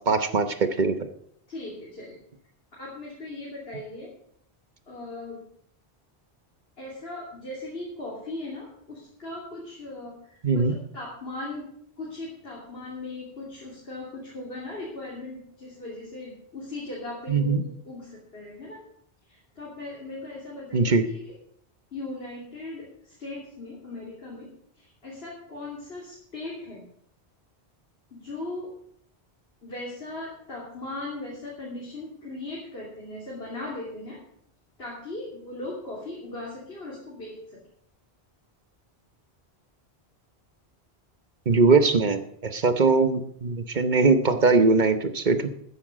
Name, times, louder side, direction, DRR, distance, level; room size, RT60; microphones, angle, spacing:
voice 1, 0.1-0.9 10.4-10.8 17.3-17.6 20.7-21.0 41.5-45.5, right 4 dB, 50° right, 9 dB, 1.1 m, -21 dB
voice 2, 1.5-2.2 2.7-4.1 4.9-5.5 6.8-11.7 12.0-18.8 19.3-21.4 21.9-24.5 24.8-26.8 28.1-28.7 29.6-34.2 34.8-37.4, left 2 dB, 65° left, -5 dB, 3.3 m, -38 dB
13.5 x 9.7 x 5.1 m, 0.68 s
omnidirectional pair, 1.1 m